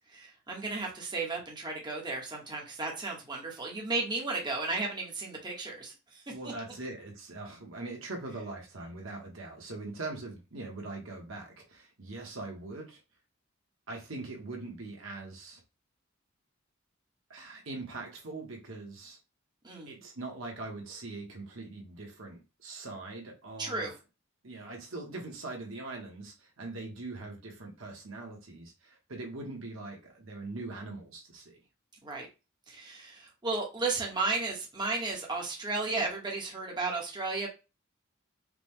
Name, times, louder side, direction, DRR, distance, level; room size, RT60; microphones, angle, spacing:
voice 1, 0.1-6.2 19.6-19.9 23.6-23.9 32.0-32.3 32.7-37.5, right 3 dB, 20° right, -1 dB, 1.1 m, -34 dB
voice 2, 6.3-13.0 13.9-15.6 17.3-19.2 19.9-23.9 24.4-31.6, right 2 dB, 70° right, 1 dB, 1.3 m, -42 dB
4.9 x 2.3 x 3.5 m, 0.28 s
head